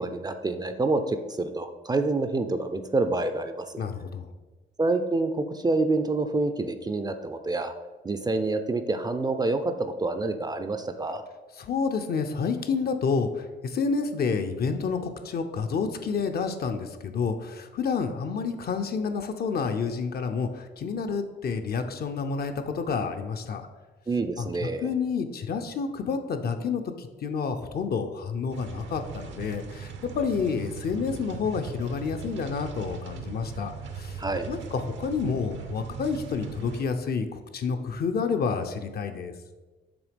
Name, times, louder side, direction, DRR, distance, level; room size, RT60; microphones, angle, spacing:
voice 1, 0.0-3.8 4.8-7.7 8.0-11.2 24.1-24.9 34.2-34.5, right 3 dB, 20° right, 8 dB, 0.5 m, -27 dB
voice 2, 3.8-4.3 11.6-23.7 24.4-34.2 34.5-39.3, left 5 dB, 50° left, 6 dB, 0.7 m, -29 dB
sound 1, 28.5-36.8, right 6 dB, 70° right, 0.8 m, -39 dB
6.1 x 3.5 x 5.1 m, 1.2 s
cardioid pair, 90°, 20 cm